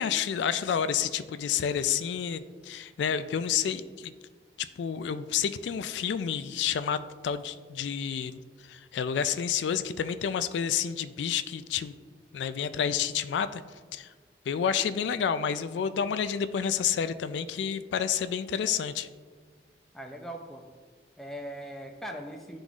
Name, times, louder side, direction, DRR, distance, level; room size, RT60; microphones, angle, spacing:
voice 1, 0.0-4.1 4.6-8.4 8.7-11.9 12.3-13.6 13.9-14.1 14.5-19.1, left 8 dB, 85° left, 12 dB, 0.3 m, -29 dB
voice 2, 19.9-20.6 21.2-22.6, equal, ahead, 2 dB, 0.5 m, -40 dB
11.5 x 3.8 x 2.4 m, 1.5 s
head